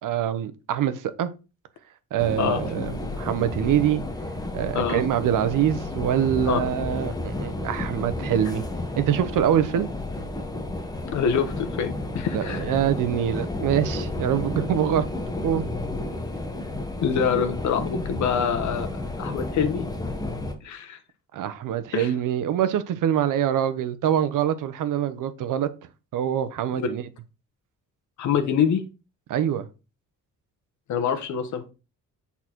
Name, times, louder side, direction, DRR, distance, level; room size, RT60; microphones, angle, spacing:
voice 1, 0.0-1.3 2.1-4.0 4.5-8.6 9.0-9.9 12.3-15.1 15.4-15.6 21.3-25.7 26.1-27.0 29.3-29.7, right 10 dB, 80° right, 1.0 m, -24 dB
sound 1, 2.2-20.6, left 2 dB, 10° left, 1.0 m, -32 dB
voice 2, 11.1-12.7 17.0-19.9 20.6-21.0 21.9-22.1 26.8-26.9 28.2-28.8 30.9-31.7, left 7 dB, 65° left, 1.2 m, -25 dB
8.4 x 4.2 x 4.5 m
cardioid pair, 150°, 31 cm